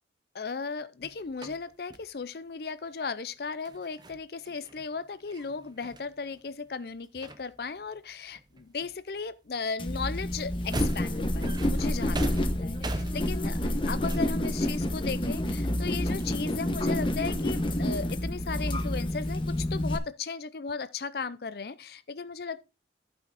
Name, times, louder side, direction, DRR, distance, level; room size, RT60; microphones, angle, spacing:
voice 1, 0.3-22.6, left 5 dB, 60° left, 0.5 m, -36 dB
sound 1, 1.0-2.1 3.6-6.7 7.0-8.0 8.3-9.2 9.5-16.5, right 2 dB, 25° right, 0.7 m, -42 dB
sound 2, 9.8-20.0, left 1 dB, 30° left, 1.0 m, -29 dB
11.5 x 5.7 x 4.0 m
head